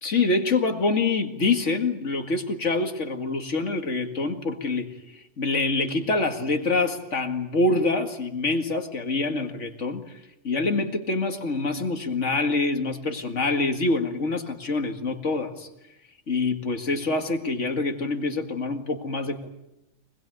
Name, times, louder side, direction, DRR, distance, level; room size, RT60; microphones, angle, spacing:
voice 1, 0.0-4.9 5.4-10.0 10.4-15.7 16.3-19.5, left 3 dB, 85° left, 5 dB, 2.4 m, -25 dB
25.0 x 21.0 x 9.3 m, 0.88 s
omnidirectional pair, 1.2 m